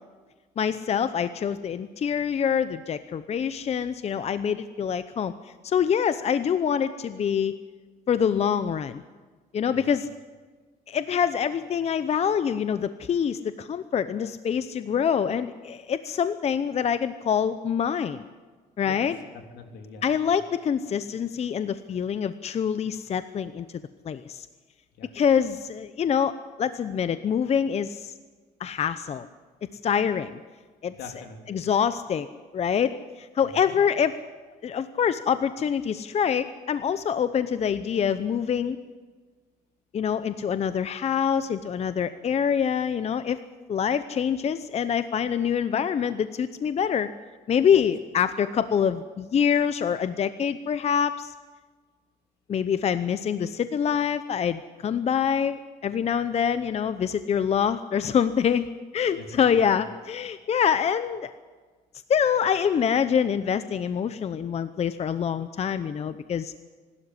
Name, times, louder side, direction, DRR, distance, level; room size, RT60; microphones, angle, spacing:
voice 1, 0.6-5.3 5.6-7.6 8.1-9.0 9.5-10.1 10.9-18.2 18.8-19.2 20.0-23.7 24.0-24.5 25.1-28.1 28.6-29.3 29.8-30.4 30.8-30.9 31.5-32.3 32.5-32.9 33.2-34.1 34.6-38.8 39.9-43.4 43.7-47.1 47.5-51.3 52.5-58.7 58.9-61.3 62.1-66.5, left 7 dB, 40° left, 12 dB, 0.7 m, -25 dB
voice 2, 19.5-20.0 25.0-25.1 31.0-31.7 33.6-33.8 47.7-47.8 59.1-59.5, left 5 dB, 80° left, 4 dB, 3.4 m, -43 dB
25.0 x 12.5 x 9.7 m, 1.4 s
cardioid pair, 110°, 17 cm